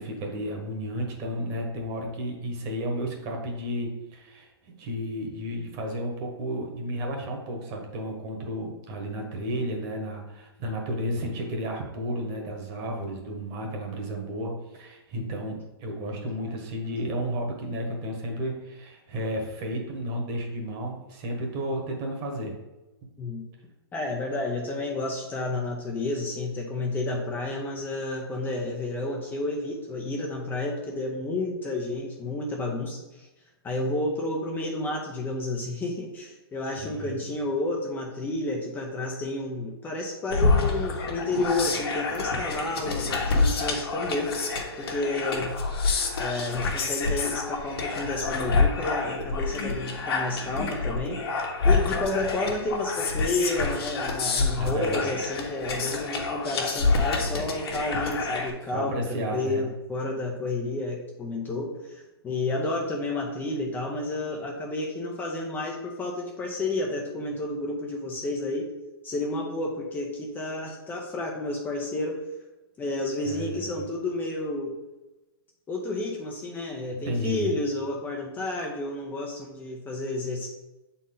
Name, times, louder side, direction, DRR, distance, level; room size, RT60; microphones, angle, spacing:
voice 1, 0.0-22.5 36.8-37.1 54.6-55.1 58.7-59.6 73.2-73.7 77.0-77.5, equal, 35° right, 1 dB, 1.5 m, -32 dB
voice 2, 23.9-33.3 33.6-44.3 44.8-45.5 46.2-51.2 51.6-68.7 69.0-72.2 72.8-74.7 75.7-80.5, left 2 dB, 15° left, -1 dB, 0.7 m, -31 dB
sound 1, 40.3-58.5, left 4 dB, 65° left, 1.5 m, -27 dB
7.2 x 4.2 x 3.9 m, 1.0 s
hypercardioid pair, 140°, 13 cm